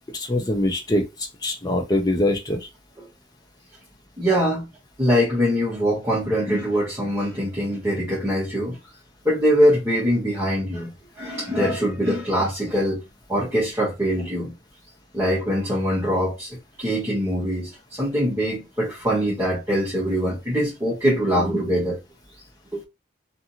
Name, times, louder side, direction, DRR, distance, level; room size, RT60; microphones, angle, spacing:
voice 1, 0.1-1.0 1.4-2.6, left 1 dB, 20° left, 0.6 m, -23 dB
voice 2, 4.2-4.7 5.0-8.8 9.2-13.0 13.3-14.5 15.1-22.0 22.7-22.8, equal, 15° right, 0.9 m, -23 dB
2.6 x 2.6 x 2.8 m
head